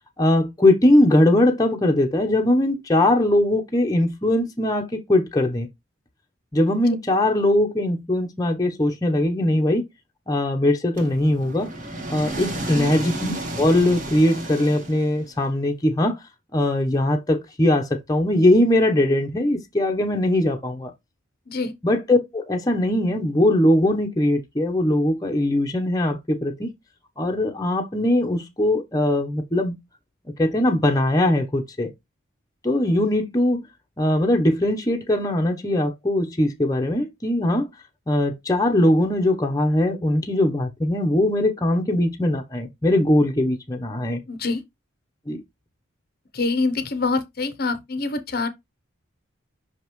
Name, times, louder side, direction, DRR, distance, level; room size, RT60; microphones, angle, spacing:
voice 1, 0.2-5.7 6.5-9.8 10.3-11.7 12.1-16.2 16.5-20.9 21.8-26.7 27.2-29.7 30.4-31.9 32.6-33.6 34.0-37.7 38.1-44.2 45.3-45.4, left 1 dB, 15° left, 0.8 m, -20 dB
sound 1, 11.0-15.4, right 1 dB, 35° right, 1.5 m, -32 dB
voice 2, 44.3-44.6 46.3-48.5, left 3 dB, 45° left, 0.8 m, -25 dB
5.8 x 5.2 x 3.1 m
head